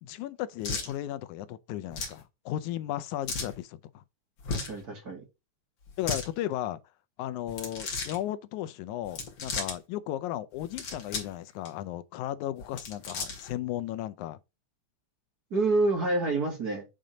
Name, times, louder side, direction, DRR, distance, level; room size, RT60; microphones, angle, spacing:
voice 1, 0.0-4.0 6.0-6.8 7.2-14.4, left 13 dB, 85° left, 2.1 m, -35 dB
sound 1, 0.6-0.9 1.9-2.2 3.3-3.5 4.4-4.8 5.9-6.3 7.5-8.2 9.0-9.8 10.6-11.3 11.6-11.7 12.6-13.5, left 4 dB, 55° left, 3.1 m, -35 dB
voice 2, 4.5-5.2 15.5-16.8, right 2 dB, 35° right, 2.1 m, -27 dB
9.2 x 3.8 x 5.1 m
omnidirectional pair, 3.4 m